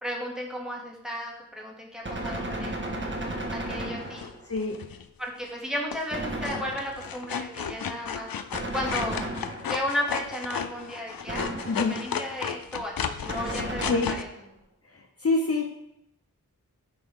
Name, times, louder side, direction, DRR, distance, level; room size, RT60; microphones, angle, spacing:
voice 1, 0.0-4.3 5.2-8.3 8.7-9.3 9.7-14.3, equal, ahead, -3 dB, 2.4 m, -34 dB
Gunshot gunfire, 2.0-4.5 6.1-7.2 8.5-10.0 11.3-12.1 13.3-14.4, right 1 dB, 35° right, 1.5 m, -34 dB
sound 1, 4.2-5.0 5.9-6.2 6.5-14.2, left 7 dB, 85° left, 0.6 m, -34 dB
voice 2, 11.7-12.0 13.9-14.1 15.2-15.6, left 3 dB, 45° left, 1 dB, 0.9 m, -25 dB
11.5 x 5.2 x 3.7 m, 0.80 s
wide cardioid pair, 50°, 34 cm